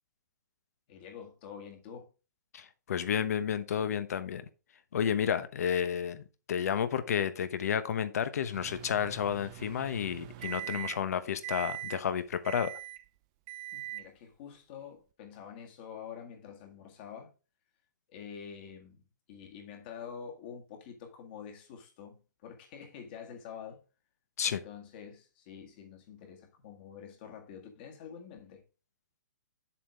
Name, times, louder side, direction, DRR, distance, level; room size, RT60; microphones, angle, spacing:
voice 1, 0.9-2.1 13.7-17.3 18.1-19.0 19.3-23.8 24.4-28.6, left 7 dB, 30° left, 1.8 m, -47 dB
voice 2, 2.5-4.4 4.9-6.2 6.5-12.7 24.4-24.6, left 8 dB, 55° left, 1.0 m, -31 dB
Microwave oven, 8.5-11.1 11.4-12.0 12.4-13.0 13.5-14.1, right 15 dB, 20° right, 0.3 m, -42 dB
7.4 x 6.5 x 3.4 m
hypercardioid pair, 170°, 10 cm